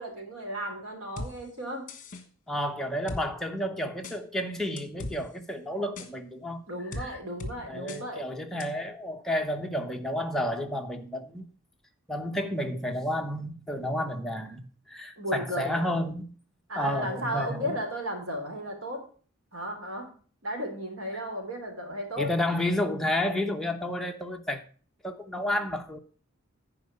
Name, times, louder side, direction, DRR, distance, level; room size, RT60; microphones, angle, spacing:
voice 1, 0.0-1.9 6.7-8.2 15.2-16.0 16.7-19.0 19.5-20.1 20.4-22.3, equal, 85° right, 3.4 m, -34 dB
sound 1, 1.2-1.3 1.9-2.2 3.1-3.2 4.0-4.2 4.8-5.2 6.0-6.1 6.9-7.1 7.4-7.5 7.9-8.0 8.6-8.7, left 2 dB, 40° left, 1.5 m, -36 dB
voice 2, 2.5-6.6 7.0-7.2 7.7-11.5 12.1-16.3 16.8-17.8 22.2-24.6 25.0-26.0, left 1 dB, ahead, 1.0 m, -31 dB
10.5 x 4.9 x 6.7 m
head